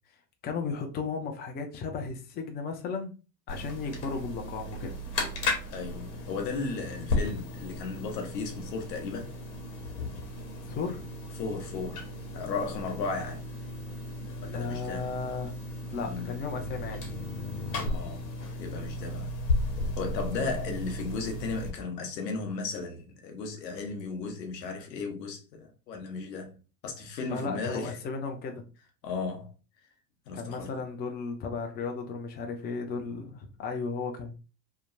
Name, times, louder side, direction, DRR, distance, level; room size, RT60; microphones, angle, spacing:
voice 1, 0.4-3.1 3.5-5.0 10.6-11.0 14.5-15.5 15.9-17.0 20.5-20.6 27.3-28.6 30.3-34.3, left 4 dB, 20° left, 0.5 m, -35 dB
sound 1, 3.5-21.7, left 2 dB, 60° left, 1.1 m, -35 dB
voice 2, 5.7-9.3 11.4-12.0 12.3-13.4 14.4-15.1 16.0-16.3 17.9-18.3 18.6-19.4 20.0-26.6 26.8-28.0 29.0-29.5 30.3-30.7, left 4 dB, 85° left, 0.9 m, -35 dB
2.8 x 2.2 x 2.5 m
hypercardioid pair, 90°, 48 cm